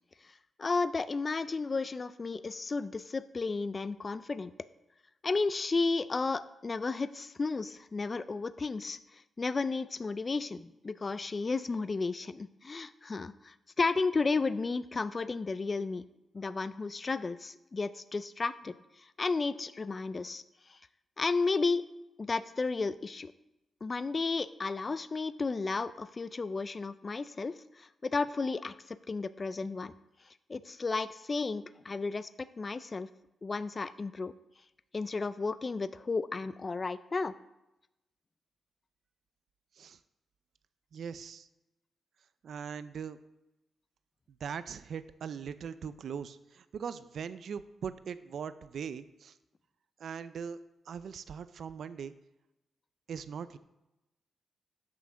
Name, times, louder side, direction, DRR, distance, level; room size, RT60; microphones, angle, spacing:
voice 1, 0.6-4.5 5.2-9.0 9.4-16.0 16.3-18.7 19.2-20.4 21.2-21.9 22.2-23.3 23.8-29.9 30.5-32.3 32.6-33.1 33.4-34.3 34.9-37.3, left 4 dB, 40° left, 14 dB, 0.4 m, -33 dB
voice 2, 40.9-41.5 42.4-43.2 44.4-49.4 50.0-50.6 50.9-52.1 53.1-53.6, right 7 dB, 75° right, 13 dB, 0.4 m, -40 dB
7.6 x 5.9 x 6.2 m, 0.94 s
cardioid pair, 60°, 0 cm